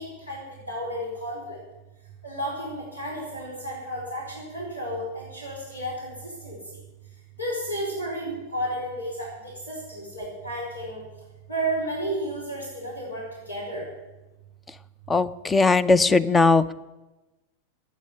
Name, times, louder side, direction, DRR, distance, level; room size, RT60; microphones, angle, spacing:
voice 1, 0.0-1.6 2.2-6.6 7.4-11.0 11.5-13.9, right 1 dB, 80° left, -3 dB, 4.7 m, -32 dB
voice 2, 15.1-16.7, left 3 dB, 15° left, 20 dB, 0.6 m, -19 dB
13.5 x 8.9 x 9.7 m, 1.1 s
figure-of-eight pair, 90°, 0 cm